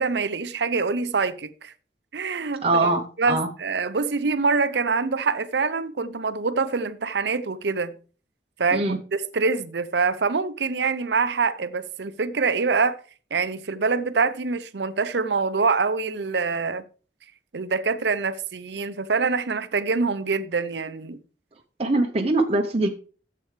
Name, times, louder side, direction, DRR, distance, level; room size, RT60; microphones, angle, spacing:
voice 1, 0.0-1.7 2.1-8.0 8.6-8.8 9.1-13.0 13.3-16.9 17.5-21.2, right 4 dB, 70° right, 0.7 m, -25 dB
voice 2, 2.6-3.5 8.7-9.0 21.8-22.9, right 2 dB, 35° right, 0.8 m, -22 dB
12.5 x 7.7 x 3.3 m
head